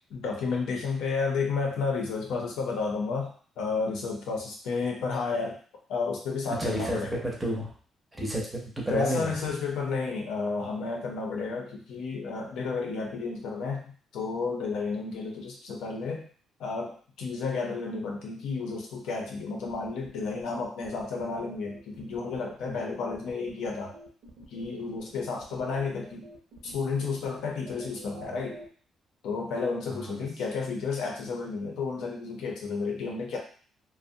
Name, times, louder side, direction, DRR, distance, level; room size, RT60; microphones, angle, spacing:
voice 1, 0.1-5.6 5.9-7.2 8.9-16.3 16.6-24.0 24.5-26.2 26.6-28.6 29.2-33.4, left 4 dB, 85° left, 0 dB, 0.6 m, -32 dB
voice 2, 6.5-7.7 8.2-9.4 22.7-22.8 29.9-30.3, right 1 dB, 10° right, -2 dB, 0.6 m, -31 dB
sound 1, 19.7-28.7, right 4 dB, 65° right, 0.6 m, -48 dB
2.6 x 2.1 x 2.7 m, 0.43 s
cardioid pair, 165°, 0 cm